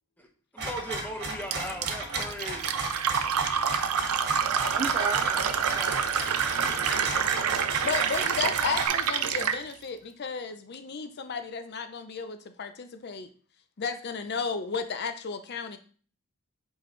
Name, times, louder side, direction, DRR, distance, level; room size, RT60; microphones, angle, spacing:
voice 1, 0.2-2.8, equal, 5° left, 1 dB, 1.0 m, -38 dB
sound 1, 0.6-8.9, right 2 dB, 50° right, 1.9 m, -34 dB
Fill (with liquid), 1.5-9.6, right 7 dB, 80° right, 0.6 m, -27 dB
voice 2, 4.7-7.6, right 3 dB, 25° right, 8 dB, 0.3 m, -37 dB
voice 3, 7.8-13.3 13.8-15.8, left 5 dB, 45° left, 9 dB, 0.5 m, -33 dB
7.7 x 4.7 x 3.1 m, 0.42 s
head